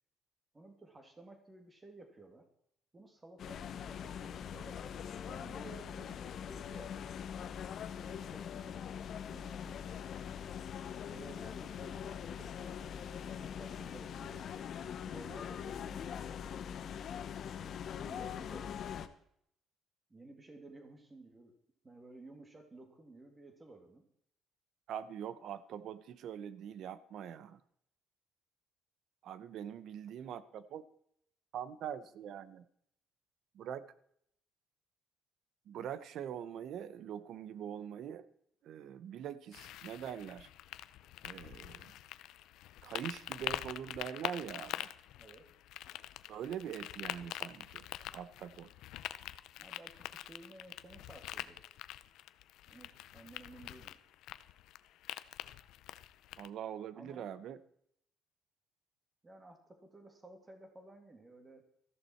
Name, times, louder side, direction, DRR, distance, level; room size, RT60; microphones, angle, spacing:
voice 1, 0.5-2.5 2.9-4.8 5.3-7.0 7.9-8.5 9.3-9.8 11.1-13.0 13.2-16.7 18.0-18.7 20.1-21.5 21.8-24.0 45.2-45.5 49.6-51.6 52.7-54.0 56.9-57.3 59.2-61.6, right 2 dB, 15° right, 5 dB, 2.3 m, -55 dB
sound 1, 3.4-19.1, left 8 dB, 45° left, 0.9 m, -42 dB
voice 2, 24.9-27.6 29.2-30.8 31.5-32.6 33.5-33.9 35.7-38.3 38.6-40.5 41.2-41.9 42.8-44.9 46.3-47.9 48.1-48.7 56.4-57.6, right 9 dB, 55° right, 15 dB, 0.9 m, -43 dB
sound 2, 39.5-56.5, left 13 dB, 75° left, 0.6 m, -45 dB
14.0 x 13.5 x 4.5 m, 0.70 s
cardioid pair, 160°, 0 cm